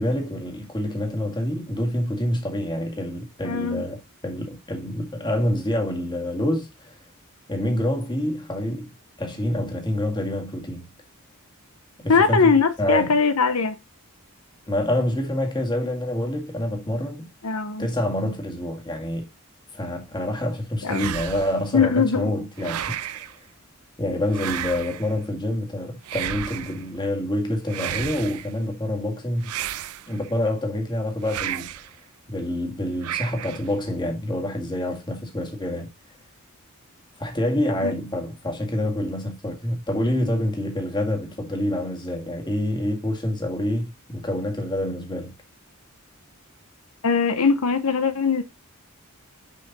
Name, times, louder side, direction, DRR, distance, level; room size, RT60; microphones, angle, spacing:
voice 1, 0.0-4.0 4.2-6.9 7.5-8.9 9.2-10.9 12.0-13.2 14.7-17.3 17.8-19.3 19.7-23.4 24.0-29.5 30.1-31.7 32.3-35.9 37.2-45.3, left 1 dB, 20° left, 1.9 m, -27 dB
voice 2, 3.4-3.8 12.1-13.7 17.4-17.9 20.8-21.1 21.7-22.3 37.8-37.9 47.0-48.4, left 5 dB, 85° left, 0.9 m, -21 dB
sound 1, 20.9-21.7 22.6-23.3 24.3-25.1 26.0-26.8 27.7-28.5 29.4-30.3 31.2-31.9 33.0-33.7, right 11 dB, 85° right, 0.4 m, -32 dB
6.5 x 5.2 x 4.1 m
head